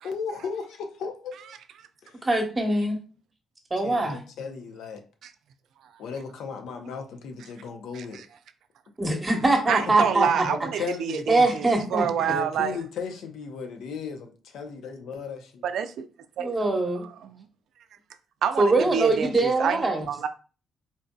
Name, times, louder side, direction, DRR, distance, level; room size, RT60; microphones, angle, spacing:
voice 1, 0.0-1.5 2.0-2.2 3.8-5.0 6.0-8.2 9.8-9.9 10.5-11.5 12.3-15.6, left 5 dB, 80° left, 0.6 m, -36 dB
voice 2, 2.2-3.0 3.7-4.2 9.0-10.5 10.8-10.9 11.3-12.3 16.4-17.0 18.6-20.0, right 2 dB, 20° right, 1.0 m, -23 dB
voice 3, 7.9-8.2 9.7-12.8 15.6-16.1 16.4-16.5 17.2-17.3 18.4-20.3, right 7 dB, 75° right, 0.3 m, -28 dB
3.8 x 2.6 x 2.2 m
cardioid pair, 90°, 0 cm